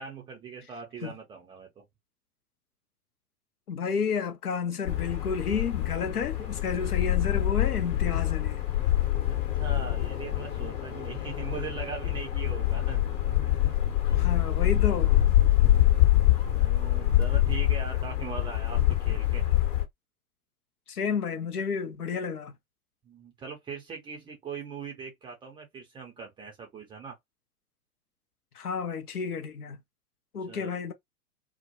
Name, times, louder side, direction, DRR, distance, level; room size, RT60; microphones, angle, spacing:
voice 1, 0.0-1.8 9.3-13.0 13.4-13.7 14.2-14.4 15.4-15.5 16.5-19.4 23.0-27.2 30.5-30.7, right 6 dB, 10° right, 0.5 m, -41 dB
voice 2, 3.7-8.7 14.1-15.1 20.9-22.5 28.6-29.8 30.3-30.9, left 6 dB, 80° left, 0.7 m, -31 dB
sound 1, 4.9-19.8, left 13 dB, 60° left, 1.1 m, -25 dB
2.1 x 2.1 x 2.8 m
figure-of-eight pair, 100°, 45 cm